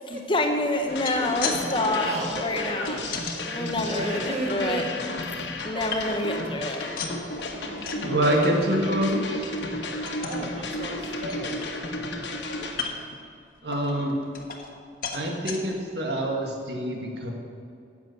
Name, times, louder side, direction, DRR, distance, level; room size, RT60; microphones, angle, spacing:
voice 1, 0.1-3.0 3.4-4.9 5.6-6.9, left 1 dB, 25° left, 4 dB, 0.8 m, -27 dB
sound 1, 0.8-1.6 1.9-3.4 3.9-4.9 5.4-6.4 6.7-8.1 8.4-8.7 9.0-9.1 9.5-9.7 10.1-10.5 10.9-11.0 11.3-12.1 12.7-13.2 13.7-14.8 15.0-15.6 16.2-16.3 16.6-16.7, left 5 dB, 50° left, 1.2 m, -36 dB
sound 2, 0.9-12.8, left 1 dB, 75° left, 1.4 m, -33 dB
voice 2, 1.0-1.3 1.6-5.0 5.3-5.5 5.7-5.8 7.6-8.9 9.9-11.6, right 1 dB, 40° right, 0 dB, 1.8 m, -35 dB
voice 3, 8.0-9.5 13.6-14.2 15.1-17.3, right 1 dB, 65° right, 1 dB, 1.8 m, -26 dB
10.5 x 7.1 x 8.2 m, 2.5 s
head